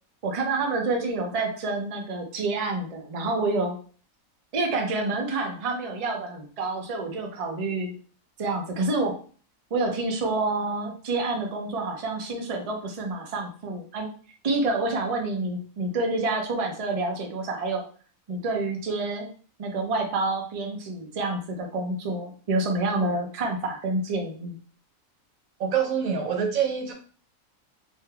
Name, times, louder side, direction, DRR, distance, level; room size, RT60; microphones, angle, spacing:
voice 1, 0.2-3.8 4.5-7.9 8.4-9.2 9.7-14.1 14.4-17.8 18.3-19.3 19.6-24.6, right 3 dB, 45° right, 1 dB, 0.4 m, -28 dB
voice 2, 25.6-26.9, right 7 dB, 85° right, 3 dB, 1.2 m, -25 dB
3.5 x 2.6 x 2.2 m, 0.42 s
omnidirectional pair, 1.4 m